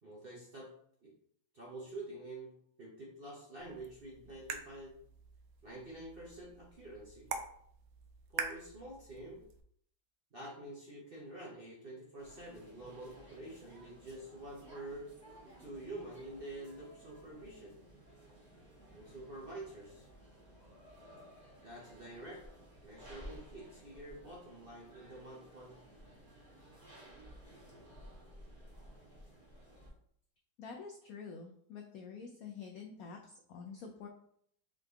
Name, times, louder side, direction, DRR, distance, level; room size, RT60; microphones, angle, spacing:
voice 1, 0.0-0.7 1.0-1.1 1.5-2.5 2.8-4.9 5.6-7.3 8.3-9.4 10.3-15.1 15.6-17.8 18.9-20.1 21.6-22.4 22.8-25.8, right 1 dB, 45° right, -4 dB, 0.7 m, -48 dB
sound 1, 3.6-9.6, right 6 dB, 80° right, 0.8 m, -45 dB
sound 2, 12.2-29.9, right 1 dB, 25° right, 1.5 m, -56 dB
voice 2, 30.6-34.1, left 5 dB, 80° left, 2 dB, 0.8 m, -47 dB
3.8 x 3.7 x 3.4 m, 0.66 s
omnidirectional pair, 2.1 m